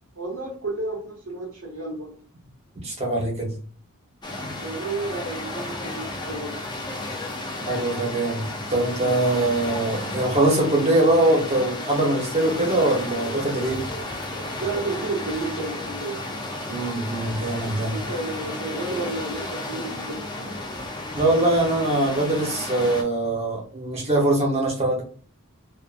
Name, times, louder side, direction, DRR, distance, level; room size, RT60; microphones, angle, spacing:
voice 1, 0.2-2.1 4.6-6.6 14.6-16.2 17.8-20.3, right 3 dB, 75° right, -5 dB, 0.9 m, -31 dB
voice 2, 2.8-3.5 7.7-13.8 16.7-17.9 21.1-25.0, right 2 dB, 30° right, -2 dB, 0.9 m, -22 dB
sound 1, 4.2-23.0, left 2 dB, 20° left, 0.5 m, -33 dB
2.5 x 2.4 x 2.5 m, 0.41 s
head